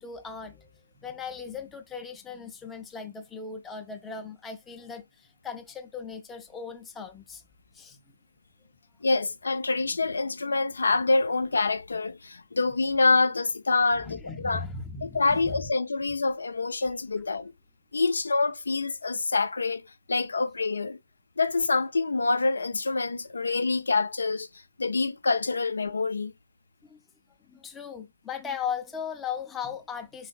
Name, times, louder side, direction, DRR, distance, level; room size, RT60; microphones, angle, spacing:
voice 1, 0.0-7.4 7.7-8.1 13.9-15.7 26.8-27.0 27.5-30.3, left 6 dB, 10° left, 0.5 m, -38 dB
voice 2, 9.0-14.6 15.1-17.5 17.9-19.8 20.1-21.0 21.4-24.5 24.8-26.3, left 3 dB, 80° left, 0.3 m, -26 dB
3.9 x 3.3 x 2.2 m
figure-of-eight pair, 135°, 0 cm